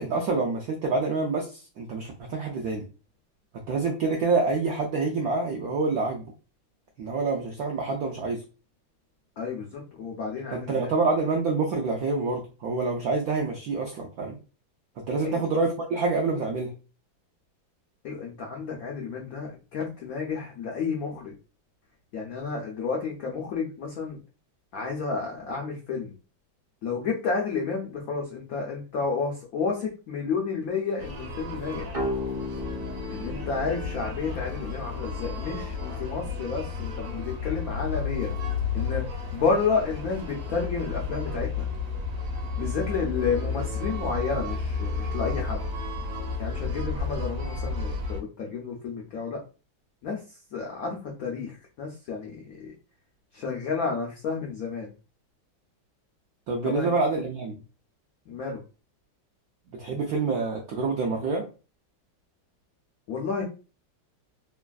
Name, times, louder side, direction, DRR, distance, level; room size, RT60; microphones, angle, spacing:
voice 1, 0.0-2.8 3.7-6.2 7.0-8.4 10.5-14.4 15.1-16.7 56.5-57.6 59.7-61.5, right 3 dB, 80° right, 0 dB, 0.8 m, -27 dB
voice 2, 9.4-10.9 15.2-15.4 18.0-21.3 22.1-24.2 24.7-26.1 26.8-31.9 33.1-38.3 38.7-39.1 39.3-41.7 42.6-45.6 46.4-49.4 50.0-50.2 50.5-52.7 53.3-54.9 56.6-56.9 58.3-58.6 63.1-63.4, left 5 dB, 85° left, -1 dB, 0.7 m, -31 dB
sound 1, 31.0-48.2, left 4 dB, 60° right, 1.2 m, -32 dB
sound 2, 31.9-35.4, left 2 dB, 30° right, 0.6 m, -35 dB
3.2 x 2.3 x 2.3 m, 0.34 s
omnidirectional pair, 2.2 m